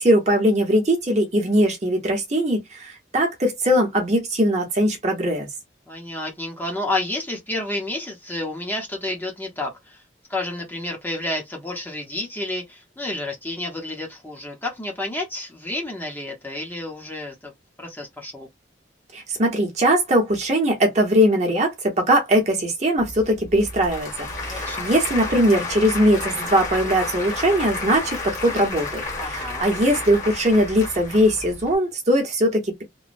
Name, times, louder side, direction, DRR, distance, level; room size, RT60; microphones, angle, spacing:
voice 1, 0.0-5.5 19.1-32.8, equal, 35° right, 0.8 m, -20 dB
voice 2, 5.9-10.0 10.3-17.5 17.8-18.5 24.4-24.9 29.2-29.7, left 2 dB, 10° left, 0.7 m, -30 dB
Applause / Crowd, 23.0-31.7, left 3 dB, 40° left, 1.1 m, -31 dB
3.0 x 2.2 x 2.5 m
head